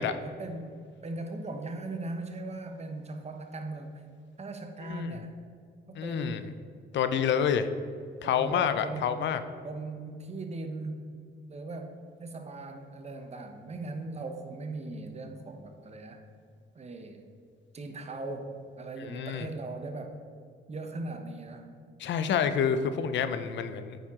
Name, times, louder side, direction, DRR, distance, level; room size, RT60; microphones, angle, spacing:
voice 1, 0.2-3.9 4.4-5.4 5.9-6.5 8.2-9.1 9.6-11.0 11.5-16.2 16.7-17.3 17.7-20.2 20.7-21.7, right 2 dB, 35° right, 5 dB, 0.9 m, -39 dB
voice 2, 4.8-5.1 5.9-6.4 6.9-7.7 8.2-9.4 19.0-19.5 22.0-24.0, left 8 dB, 65° left, 10 dB, 0.5 m, -28 dB
8.9 x 4.5 x 3.6 m, 2.2 s
cardioid pair, 90°, 20 cm